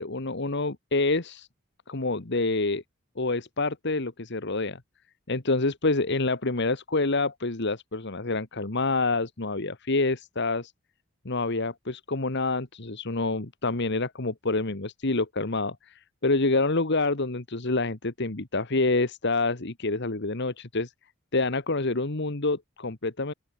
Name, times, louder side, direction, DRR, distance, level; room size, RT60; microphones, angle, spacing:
voice 1, 0.0-1.5 1.9-2.8 3.2-4.8 5.3-10.7 11.2-20.9 21.3-23.3, left 3 dB, 55° left, 1.7 m, -27 dB
open air
head